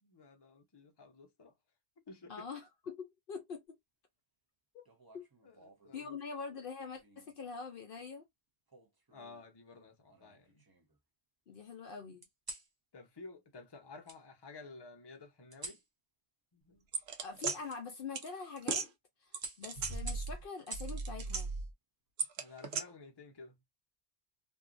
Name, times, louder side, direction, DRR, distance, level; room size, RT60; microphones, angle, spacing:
voice 1, 0.0-1.5 2.1-2.5 5.4-6.2 9.1-10.6 12.9-15.8 16.5-16.9 22.4-23.6, left 3 dB, 25° left, 0.7 m, -53 dB
voice 2, 2.3-3.6 4.7-4.8 5.1-5.3 5.9-8.3 11.5-12.3 17.2-18.9 19.2-21.5, left 5 dB, 60° left, 0.7 m, -44 dB
sound 1, 4.9-6.0 7.0-7.4 8.7-9.5 10.1-11.0 12.2-12.7 14.1-14.2 15.5-15.9 17.7-17.8 18.3-18.6 19.4-21.0 22.5-22.9, right 2 dB, 25° right, 0.6 m, -49 dB
sound 2, 16.9-17.6 18.1-18.3 18.6-18.9 19.3-20.4 20.7-21.7 22.2-22.8, right 4 dB, 80° right, 0.9 m, -36 dB
2.6 x 2.4 x 2.4 m
omnidirectional pair, 1.1 m